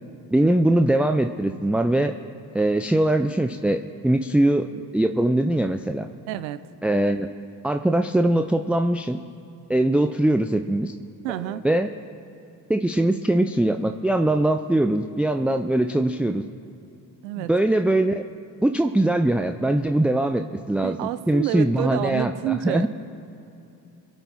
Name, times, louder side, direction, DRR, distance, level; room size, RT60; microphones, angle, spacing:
voice 1, 0.3-2.1 2.5-4.7 4.9-6.1 6.8-7.3 7.6-9.2 9.7-10.9 11.3-11.9 12.7-16.4 17.4-18.2 18.6-22.9, right 1 dB, 5° right, 7 dB, 0.4 m, -22 dB
voice 2, 6.3-6.6 11.2-11.6 17.2-17.5 20.8-22.9, right 13 dB, 85° right, 14 dB, 0.7 m, -28 dB
23.0 x 8.2 x 4.2 m, 2.9 s
hypercardioid pair, 50°, 49 cm